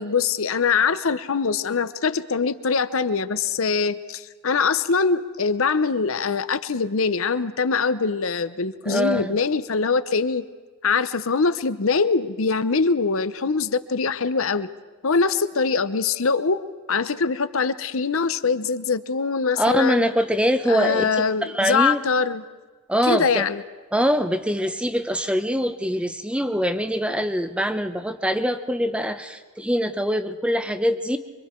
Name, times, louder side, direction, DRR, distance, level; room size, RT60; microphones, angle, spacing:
voice 1, 0.0-10.5 10.8-14.7 15.0-20.1 20.7-22.4 23.0-23.6, left 5 dB, 65° left, 13 dB, 0.8 m, -23 dB
voice 2, 8.9-9.4 19.6-22.0 22.9-23.4 23.9-31.2, equal, 5° right, 9 dB, 0.8 m, -23 dB
25.0 x 24.0 x 4.5 m, 1.4 s
head